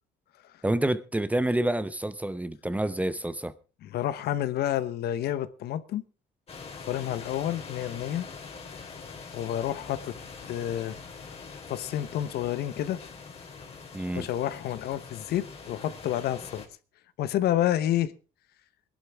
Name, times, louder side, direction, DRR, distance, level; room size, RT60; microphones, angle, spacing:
voice 1, 0.6-3.5 13.9-14.3, right 1 dB, 10° right, 0.7 m, -28 dB
voice 2, 3.8-6.0 6.9-8.3 9.3-10.2 10.4-10.9 11.7-13.0 14.2-16.7 17.2-18.1, left 12 dB, 70° left, 1.0 m, -29 dB
sound 1, 6.5-16.7, left 5 dB, 35° left, 3.1 m, -44 dB
21.0 x 11.5 x 3.5 m
cardioid pair, 110°, 17 cm